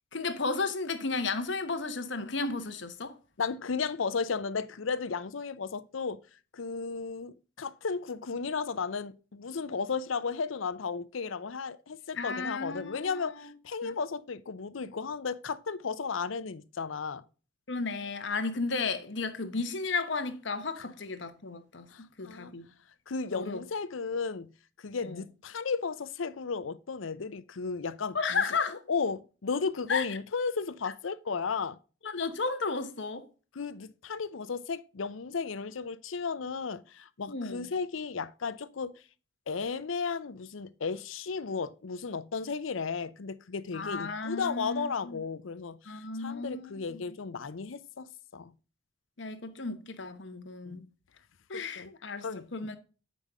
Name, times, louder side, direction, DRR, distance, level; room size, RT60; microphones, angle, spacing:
voice 1, 0.1-3.2 12.1-13.5 13.8-14.0 17.7-22.7 23.3-23.6 25.0-25.2 28.1-28.8 29.9-30.1 32.0-33.3 37.3-37.7 43.7-45.2 45.9-47.0 49.2-50.9 51.5-52.3 52.5-52.8, left 4 dB, 65° left, 1.0 m, -34 dB
voice 2, 3.4-6.2 6.5-17.2 20.8-20.9 21.9-22.5 23.1-24.5 24.8-28.4 28.9-31.8 33.5-38.9 39.5-45.8 46.2-48.5 50.6-50.8 51.5-51.9 52.2-52.7, left 5 dB, 80° left, 0.6 m, -34 dB
8.3 x 5.2 x 3.5 m
head